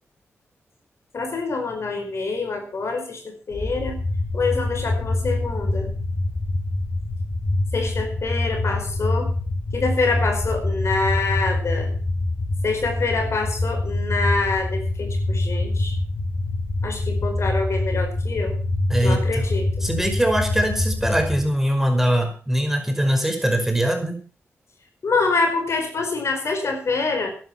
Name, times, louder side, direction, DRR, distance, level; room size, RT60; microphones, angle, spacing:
voice 1, 1.1-4.0 4.3-5.9 7.7-9.3 9.7-11.9 12.6-16.0 16.8-18.6 19.0-19.9 25.0-27.3, left 3 dB, 60° left, 5 dB, 4.8 m, -26 dB
sound 1, 3.5-21.4, left 2 dB, 30° left, 7.5 m, -25 dB
voice 2, 18.9-19.4 19.8-24.2, equal, 5° right, 4 dB, 5.4 m, -22 dB
13.0 x 11.5 x 5.9 m, 0.39 s
cardioid pair, 55°, 5 cm